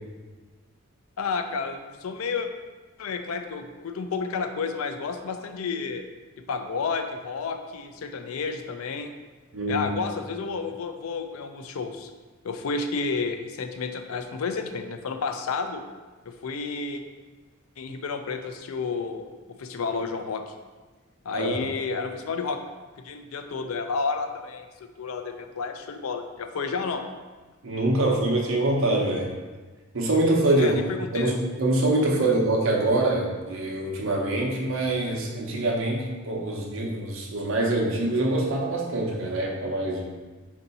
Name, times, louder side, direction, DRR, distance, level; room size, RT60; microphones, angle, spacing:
voice 1, 1.2-2.5 3.0-6.0 6.5-9.1 9.7-12.1 12.4-15.8 16.3-17.0 17.8-20.5 21.2-22.6 23.0-24.7 25.0-27.0 30.6-31.3, left 4 dB, 80° left, 7 dB, 0.4 m, -31 dB
voice 2, 9.5-9.9 21.3-21.6 27.6-29.3 29.9-30.8 31.1-40.1, right 2 dB, 65° right, -1 dB, 0.8 m, -24 dB
4.5 x 2.7 x 4.0 m, 1.3 s
head